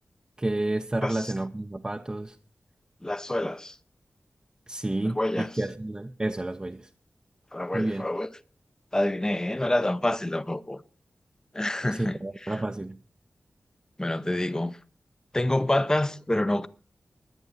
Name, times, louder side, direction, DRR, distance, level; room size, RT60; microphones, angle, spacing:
voice 1, 0.4-2.4 4.7-6.9 7.7-8.1 12.0-13.0, right 2 dB, 20° right, 0.6 m, -30 dB
voice 2, 1.0-1.3 3.0-3.8 5.0-5.6 7.5-8.3 8.9-10.8 11.5-12.6 14.0-14.8 15.3-16.7, left 1 dB, 15° left, 0.7 m, -27 dB
21.5 x 8.5 x 4.1 m
wide cardioid pair, 100°, 4 cm